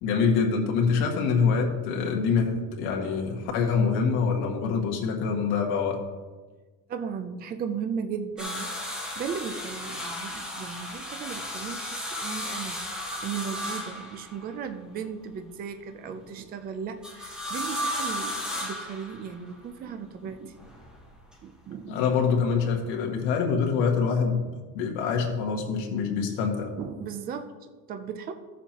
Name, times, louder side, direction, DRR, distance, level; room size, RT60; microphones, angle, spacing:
voice 1, 0.0-6.0 21.9-24.5 24.7-26.7, left 5 dB, 85° left, 1 dB, 1.8 m, -25 dB
voice 2, 6.9-20.6 21.4-22.0 26.8-28.3, right 7 dB, 25° right, 8 dB, 0.5 m, -36 dB
sound 1, 8.4-14.6 17.0-19.5 20.6-21.3 22.8-22.9, left 1 dB, ahead, 1.3 m, -34 dB
14.5 x 7.1 x 2.9 m, 1.3 s
cardioid pair, 170°, 35 cm